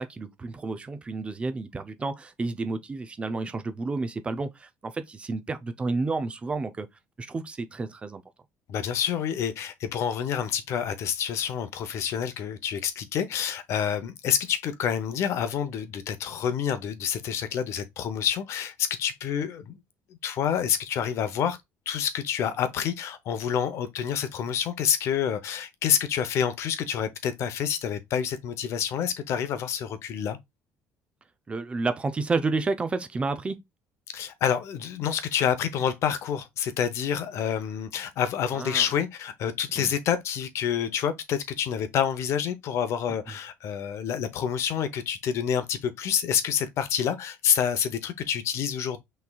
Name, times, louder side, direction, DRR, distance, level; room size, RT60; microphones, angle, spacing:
voice 1, 0.0-6.9 7.2-8.2 31.5-33.6 38.5-38.9 39.8-39.9, right 3 dB, 20° right, 0.5 m, -30 dB
voice 2, 8.7-19.8 20.2-21.6 21.9-30.4 34.1-49.0, left 8 dB, 55° left, 0.7 m, -28 dB
5.8 x 3.2 x 2.3 m
cardioid pair, 130°, 6 cm